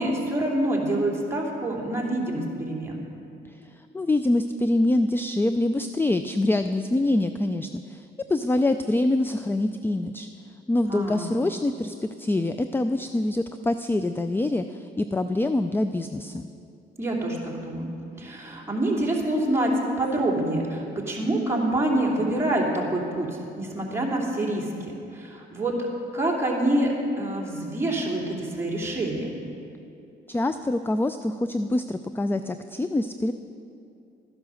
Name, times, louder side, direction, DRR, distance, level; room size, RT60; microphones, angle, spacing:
voice 1, 0.0-3.0 10.9-11.3 17.0-17.9 18.2-19.7 20.0-23.3 23.6-25.7 26.1-29.3, right 1 dB, 15° right, -3 dB, 3.0 m, -26 dB
voice 2, 3.5-10.3 10.7-16.5 30.3-33.3, left 2 dB, 10° left, 10 dB, 0.4 m, -25 dB
13.0 x 10.5 x 6.4 m, 2.6 s
cardioid pair, 90°, 20 cm